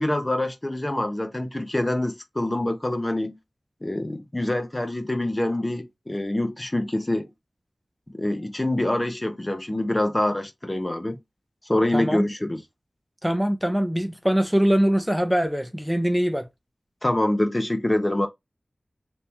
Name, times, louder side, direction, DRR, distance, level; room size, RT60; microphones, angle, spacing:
voice 1, 0.0-3.4 3.8-7.3 8.1-11.2 11.7-12.6 17.0-18.3, left 1 dB, 25° left, 0.8 m, -25 dB
voice 2, 11.9-12.2 13.2-16.5, equal, 5° right, 0.7 m, -22 dB
3.5 x 2.9 x 2.9 m
wide cardioid pair, 50°, 0 cm